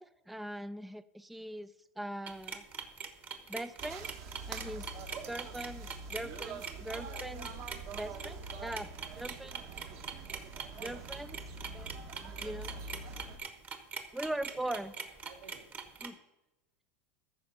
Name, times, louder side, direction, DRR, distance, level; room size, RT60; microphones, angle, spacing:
voice 1, 0.0-2.7 3.5-4.1 4.5-4.9 5.3-7.5 7.8-9.6 10.8-11.3 11.7-11.9 12.2-12.8 14.1-14.9 16.0-16.2, right 1 dB, ahead, 14 dB, 0.3 m, -41 dB
sound 1, 2.3-16.1, right 6 dB, 25° right, 1.1 m, -42 dB
sound 2, 3.8-13.4, right 4 dB, 45° right, 1.2 m, -45 dB
voice 2, 10.7-11.1 12.1-12.3 14.5-15.7, right 5 dB, 90° right, 3 dB, 2.1 m, -56 dB
14.0 x 5.3 x 5.7 m, 0.98 s
supercardioid pair, 135°, 7 cm